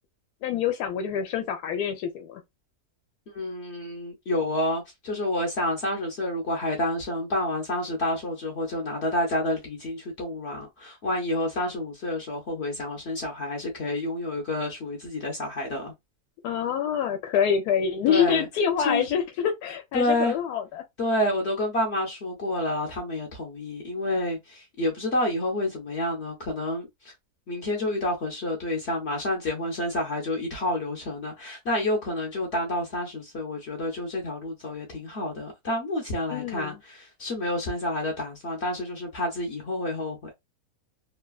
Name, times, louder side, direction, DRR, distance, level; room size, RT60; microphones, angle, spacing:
voice 1, 0.4-2.4 16.4-20.8 36.3-36.8, left 8 dB, 90° left, 1.1 m, -26 dB
voice 2, 3.3-15.9 18.1-18.5 18.8-19.1 19.9-20.3 21.0-27.1 27.5-40.3, left 1 dB, 55° left, 0.9 m, -29 dB
3.1 x 2.2 x 2.3 m
omnidirectional pair, 1.6 m